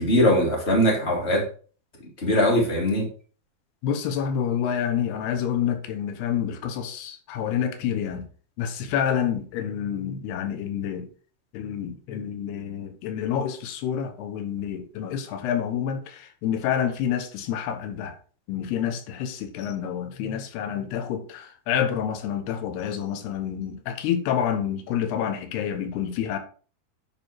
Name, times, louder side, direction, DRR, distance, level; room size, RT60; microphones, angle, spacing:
voice 1, 0.0-1.4 2.2-3.0, equal, 15° left, 3.4 m, -21 dB
voice 2, 3.8-8.3 8.6-11.1 11.5-18.2 18.5-26.4, left 9 dB, 90° left, 3.2 m, -28 dB
11.5 x 5.5 x 4.7 m
omnidirectional pair, 4.5 m